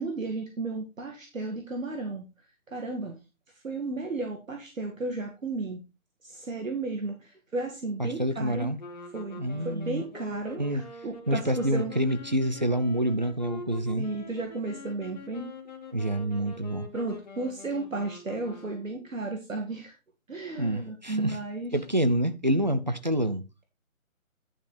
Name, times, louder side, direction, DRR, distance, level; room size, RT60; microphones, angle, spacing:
voice 1, 0.0-2.3 2.7-3.2 3.6-5.8 6.2-8.7 9.1-11.9 14.0-15.5 16.9-19.9 20.3-21.8, right 3 dB, 65° right, 2.2 m, -34 dB
voice 2, 8.0-8.8 9.4-10.0 10.6-10.8 11.3-14.1 15.9-16.9 20.6-21.4 21.7-23.4, right 1 dB, 35° right, 0.5 m, -27 dB
sound 1, 8.8-19.2, left 2 dB, 30° left, 1.7 m, -45 dB
11.0 x 5.7 x 3.9 m
figure-of-eight pair, 155°, 42 cm